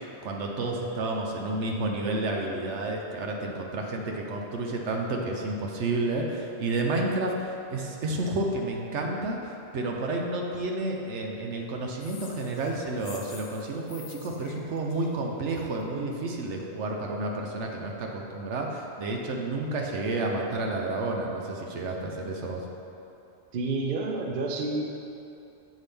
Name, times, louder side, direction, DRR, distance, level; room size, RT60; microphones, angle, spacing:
voice 1, 0.0-22.7, right 2 dB, 75° right, 0 dB, 1.0 m, -30 dB
sound 1, 12.0-15.8, left 5 dB, 90° left, 1.1 m, -49 dB
voice 2, 23.5-24.8, right 3 dB, 50° right, 1 dB, 0.8 m, -29 dB
7.3 x 6.1 x 3.4 m, 2.8 s
omnidirectional pair, 1.2 m